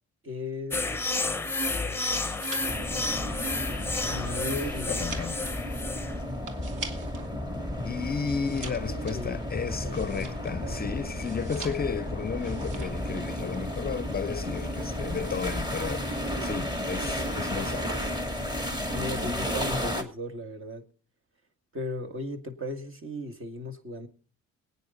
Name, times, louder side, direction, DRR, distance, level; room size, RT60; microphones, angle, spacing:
voice 1, 0.2-0.9 4.1-5.0 8.7-9.4 9.8-10.3 10.6-10.9 18.9-20.8 21.7-24.1, left 1 dB, 45° right, 2.2 m, -36 dB
sound 1, 0.7-6.2, left 3 dB, 10° left, 0.9 m, -31 dB
sound 2, 1.9-7.3 7.6-10.7 11.2-12.1 12.4-13.1 13.3-13.7, right 4 dB, 80° right, 2.1 m, -44 dB
sound 3, 2.7-20.0, left 1 dB, 15° right, 2.5 m, -33 dB
voice 2, 4.9-5.3 7.9-18.1, left 6 dB, 30° left, 0.6 m, -33 dB
22.0 x 9.4 x 3.9 m
cardioid pair, 90°, 30 cm